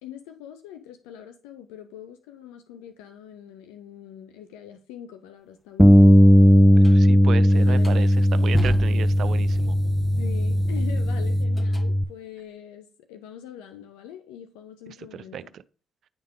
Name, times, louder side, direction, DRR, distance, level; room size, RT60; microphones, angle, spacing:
voice 1, 0.0-6.6 7.5-8.1 10.2-15.5, left 10 dB, 90° left, 0.5 m, -43 dB
Bass guitar, 5.8-12.0, equal, ahead, 0.4 m, -17 dB
sound 1, 6.8-7.0 7.6-11.9, equal, 20° left, 1.3 m, -35 dB
voice 2, 6.8-9.8 15.1-15.6, right 9 dB, 70° right, 0.4 m, -34 dB
9.7 x 3.6 x 3.7 m
hypercardioid pair, 50°, 0 cm